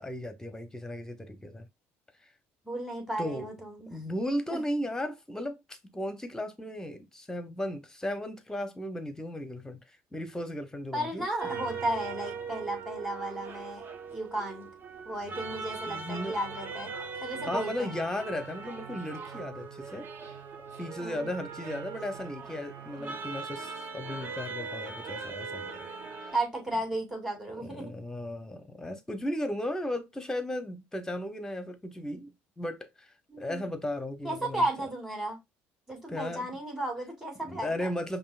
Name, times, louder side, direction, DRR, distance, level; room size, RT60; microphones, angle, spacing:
voice 1, 0.0-1.7 3.2-3.5 3.9-11.3 15.9-16.4 17.5-20.3 20.8-25.9 26.2-26.3 27.5-34.7 36.1-36.5 37.5-38.2, left 1 dB, 10° left, 0.9 m, -36 dB
voice 2, 2.6-4.0 4.5-4.6 10.9-13.8 14.1-14.7 15.1-16.9 17.2-17.9 21.0-21.3 22.9-23.2 26.3-27.9 33.3-33.7 34.2-35.4 35.9-37.9, right 1 dB, 5° right, 2.2 m, -34 dB
sound 1, 11.4-26.4, right 5 dB, 40° right, 0.8 m, -40 dB
5.3 x 2.8 x 2.4 m
supercardioid pair, 105°, 5 cm